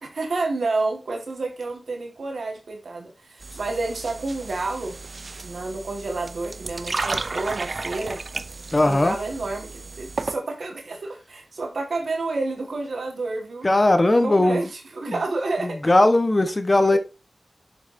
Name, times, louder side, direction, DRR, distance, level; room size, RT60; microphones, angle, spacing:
voice 1, 0.0-5.0 5.4-8.2 8.8-13.7 14.2-15.8 16.9-17.0, right 3 dB, 80° right, 1.7 m, -29 dB
sound 1, 3.4-10.4, right 3 dB, 55° right, 0.5 m, -33 dB
voice 2, 8.7-9.1 13.6-14.6 15.1-15.2 15.6-17.0, left 2 dB, 30° left, 1.1 m, -18 dB
6.8 x 6.6 x 2.7 m
wide cardioid pair, 60°, 0 cm